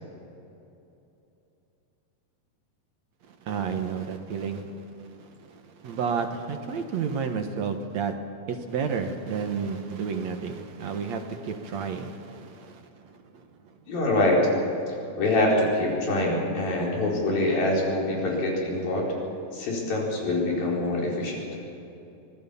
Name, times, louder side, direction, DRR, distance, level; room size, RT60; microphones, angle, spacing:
voice 1, 3.4-8.1 8.5-13.5, right 6 dB, 60° right, 5 dB, 2.3 m, -31 dB
voice 2, 13.9-14.4 15.2-19.1 19.5-21.4, left 2 dB, 80° left, -3 dB, 6.4 m, -25 dB
25.5 x 19.0 x 7.1 m, 2.7 s
omnidirectional pair, 4.1 m